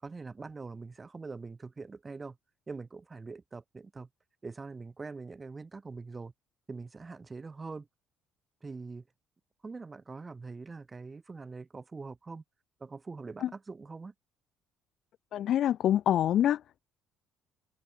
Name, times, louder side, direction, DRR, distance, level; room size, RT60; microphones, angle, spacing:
voice 1, 0.0-2.4 2.7-4.1 4.4-6.3 6.7-7.9 8.6-9.0 9.6-12.4 12.8-14.1, right 4 dB, 15° right, 6.8 m, -43 dB
voice 2, 15.3-16.8, left 11 dB, 50° left, 3.0 m, -26 dB
cardioid pair, 160°, 0 cm